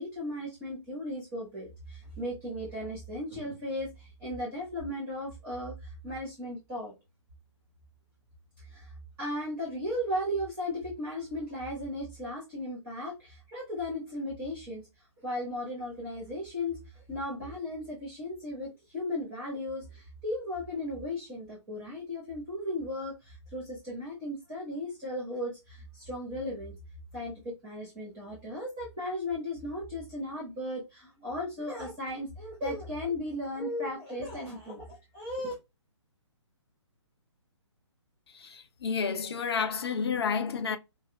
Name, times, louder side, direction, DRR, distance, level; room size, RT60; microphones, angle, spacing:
voice 1, 0.0-6.9 8.6-14.8 15.2-26.7 27.1-35.5, left 1 dB, 15° right, 1.5 m, -36 dB
voice 2, 38.3-40.8, left 6 dB, 55° left, 0.6 m, -30 dB
5.4 x 2.1 x 2.2 m
figure-of-eight pair, 135°, 16 cm